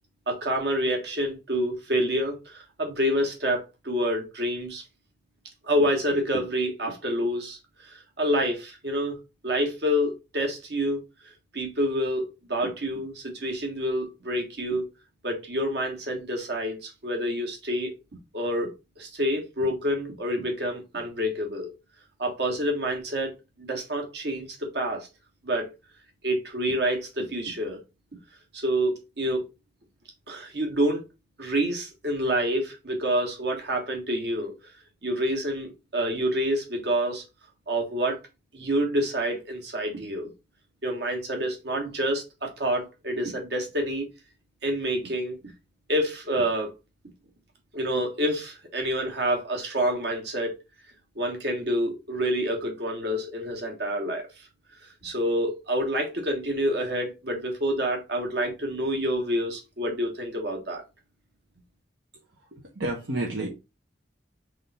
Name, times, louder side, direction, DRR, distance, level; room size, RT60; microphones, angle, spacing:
voice 1, 0.3-4.8 5.6-11.0 11.5-14.9 15.2-17.9 18.3-21.7 22.2-23.3 23.6-25.1 25.4-25.7 26.2-27.8 28.5-29.5 30.3-31.0 31.4-34.5 35.0-37.2 37.7-38.2 38.5-40.3 40.8-44.1 44.6-45.4 45.9-46.7 47.7-50.5 51.1-54.4 55.0-60.8, equal, 60° right, 1.5 m, -28 dB
voice 2, 62.5-63.5, right 2 dB, 80° right, 1.0 m, -30 dB
3.6 x 3.3 x 4.1 m
head